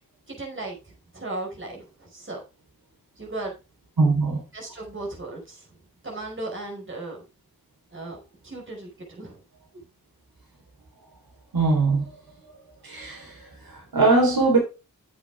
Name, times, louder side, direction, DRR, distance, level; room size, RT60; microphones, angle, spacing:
voice 1, 0.3-0.8 1.1-2.4 3.2-3.5 4.5-5.7 6.0-7.2 7.9-9.4, right 2 dB, 35° right, 5.1 m, -36 dB
voice 2, 4.0-4.4 11.5-12.1 12.8-14.6, right 3 dB, 75° right, 4.0 m, -21 dB
8.9 x 8.3 x 3.6 m
wide cardioid pair, 75°, 36 cm